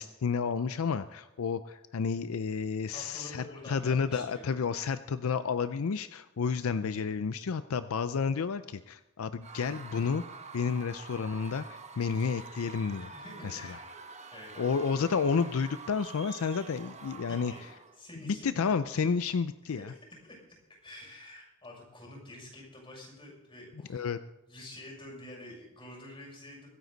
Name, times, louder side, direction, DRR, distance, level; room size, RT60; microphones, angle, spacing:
voice 1, 0.0-10.2 10.5-13.1 13.4-13.8 14.6-17.7 18.3-19.9 23.9-24.2, left 5 dB, 70° left, 12 dB, 0.5 m, -31 dB
voice 2, 2.9-4.5 13.1-14.0 14.3-14.7 17.3-17.6 18.0-18.6 19.0-19.1 19.7-19.8 20.2-20.4 20.8-24.1 24.5-26.7, left 1 dB, 25° left, -1 dB, 6.6 m, -48 dB
Screaming / Cheering / Crowd, 9.4-18.0, right 4 dB, 30° right, 1.1 m, -47 dB
24.5 x 9.4 x 4.0 m, 0.97 s
head